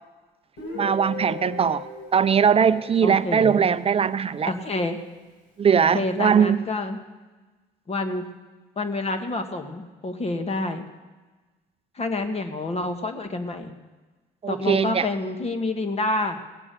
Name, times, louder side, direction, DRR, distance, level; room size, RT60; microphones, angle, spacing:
Guitar, 0.6-4.4, left 4 dB, 75° left, 4.9 m, -39 dB
voice 1, 0.7-1.8 2.1-4.5 5.6-6.7 14.4-15.1, right 7 dB, 35° right, 14 dB, 0.6 m, -20 dB
voice 2, 3.0-3.7 4.4-5.0 5.9-7.0 7.9-8.3 8.7-10.8 11.9-13.7 14.5-16.4, left 2 dB, 35° left, 7 dB, 1.5 m, -28 dB
18.0 x 8.5 x 6.8 m, 1.3 s
supercardioid pair, 80°, 18 cm